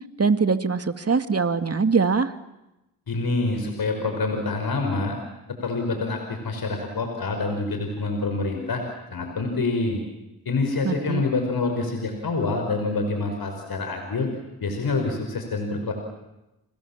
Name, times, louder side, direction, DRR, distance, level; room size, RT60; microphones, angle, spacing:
voice 1, 0.2-2.3 10.8-11.2, right 5 dB, 35° right, 9 dB, 2.3 m, -22 dB
voice 2, 3.1-5.1 5.6-8.8 9.1-10.0 10.5-14.3 14.6-15.9, left 3 dB, 65° left, 4 dB, 5.5 m, -26 dB
29.5 x 26.5 x 7.4 m, 0.95 s
supercardioid pair, 45°, 40 cm